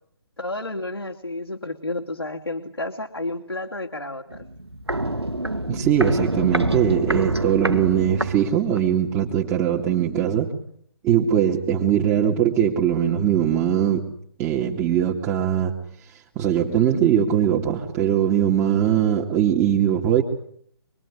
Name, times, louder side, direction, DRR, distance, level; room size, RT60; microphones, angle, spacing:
voice 1, 0.4-4.5, left 2 dB, 85° left, 0 dB, 2.9 m, -31 dB
Walk footsteps, 4.3-9.0 9.3-9.4, right 1 dB, 85° right, 2.2 m, -26 dB
voice 2, 5.4-10.5 11.0-14.1 14.4-15.7 16.1-20.2, right 9 dB, 15° right, -1 dB, 2.6 m, -21 dB
26.5 x 22.0 x 10.0 m, 0.66 s
figure-of-eight pair, 140°, 13 cm